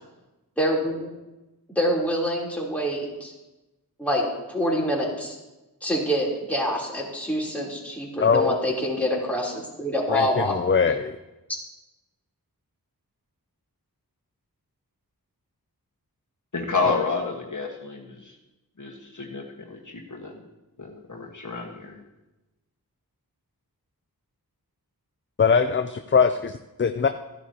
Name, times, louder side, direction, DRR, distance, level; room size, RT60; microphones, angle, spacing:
voice 1, 0.6-1.1 1.7-3.3 4.0-5.3 5.8-10.6, equal, 5° left, -4 dB, 3.4 m, -26 dB
voice 2, 8.2-8.5 10.1-11.2 25.4-27.1, left 5 dB, 35° left, 9 dB, 0.5 m, -22 dB
voice 3, 16.5-18.3 18.8-20.4 20.8-22.0, left 4 dB, 55° left, -1 dB, 1.5 m, -30 dB
14.0 x 11.0 x 2.9 m, 1.0 s
wide cardioid pair, 50°, 38 cm